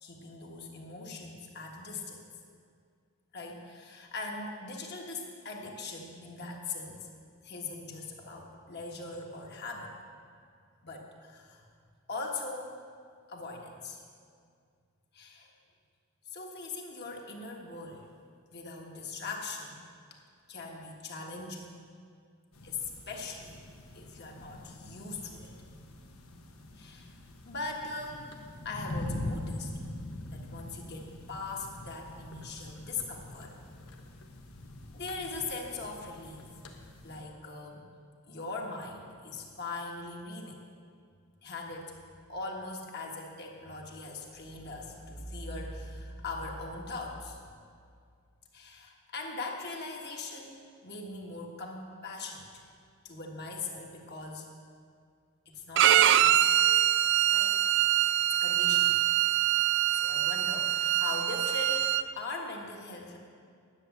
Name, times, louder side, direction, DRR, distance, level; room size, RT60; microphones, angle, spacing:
voice 1, 0.0-2.2 3.3-7.1 7.4-10.0 10.8-11.6 12.1-12.8 13.3-14.0 15.1-15.5 16.3-18.1 18.5-19.8 20.5-21.8 22.6-23.6 23.9-25.6 26.8-27.2 27.4-28.3 28.7-29.7 30.3-33.5 34.9-36.5 37.0-37.8 38.3-40.6 41.4-41.9 42.3-47.4 48.5-52.6 53.0-54.5 55.5-56.5 57.3-57.6 58.4-59.0 59.9-63.2, left 3 dB, 50° left, 0 dB, 1.6 m, -40 dB
sound 1, 22.5-37.2, left 1 dB, 85° left, 1.2 m, -43 dB
Bowed string instrument, 55.8-62.0, right 12 dB, 55° right, 0.4 m, -24 dB
10.5 x 6.9 x 8.1 m, 2.2 s
head